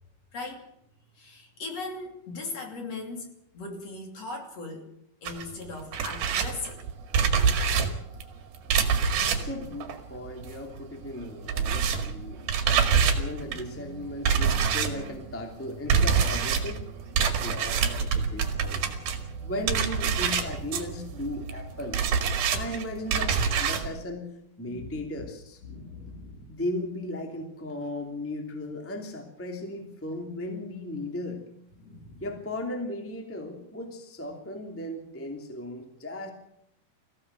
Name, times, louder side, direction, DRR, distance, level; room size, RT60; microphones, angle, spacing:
voice 1, 1.2-3.3 3.5-4.9 5.2-6.8 24.6-24.9 25.2-25.3 25.6-26.6 31.8-32.3, left 3 dB, 45° left, 3 dB, 3.8 m, -39 dB
sound 1, 5.3-10.8 11.0-23.9, right 6 dB, 80° right, 3.9 m, -26 dB
voice 2, 9.1-12.4 13.2-16.8 17.4-18.9 19.4-22.0 22.5-24.3 24.6-25.6 26.5-31.4 32.2-36.3, left 1 dB, 5° left, 4 dB, 2.2 m, -36 dB
21.0 x 15.5 x 8.0 m, 0.74 s
omnidirectional pair, 4.2 m